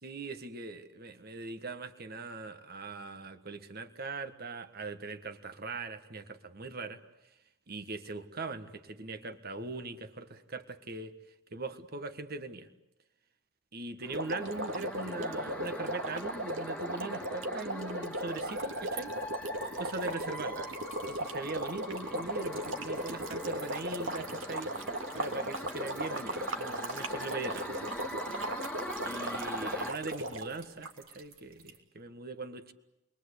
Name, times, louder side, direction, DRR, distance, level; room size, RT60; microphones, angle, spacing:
voice 1, 0.0-7.0 7.7-11.1 11.5-12.7 13.7-19.2 19.8-20.7 21.1-24.7 25.1-27.8 29.0-32.7, right 3 dB, 50° right, 9 dB, 1.6 m, -41 dB
sound 1, 14.0-29.9, equal, 5° left, 1.8 m, -42 dB
sound 2, 14.1-30.6, right 1 dB, 70° right, 2.0 m, -37 dB
sound 3, 18.3-31.8, right 5 dB, 90° right, 3.6 m, -52 dB
29.5 x 23.0 x 8.4 m, 0.88 s
head